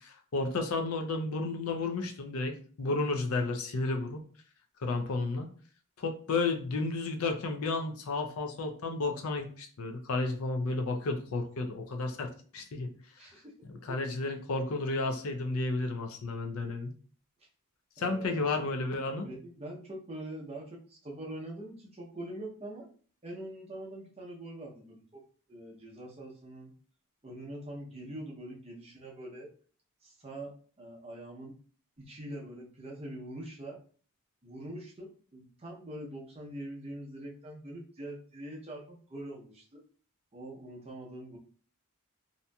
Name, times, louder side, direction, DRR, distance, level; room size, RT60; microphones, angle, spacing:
voice 1, 0.0-4.2 4.8-5.5 6.0-12.9 13.7-16.9 18.0-19.3, left 3 dB, 75° left, 5 dB, 0.5 m, -32 dB
voice 2, 13.2-13.5 18.0-18.5 19.2-22.9 23.2-26.7 27.2-29.5 30.0-31.5 32.0-33.8 34.4-39.8 40.3-41.4, right 1 dB, 25° right, -2 dB, 0.6 m, -43 dB
2.7 x 2.6 x 2.2 m, 0.42 s
head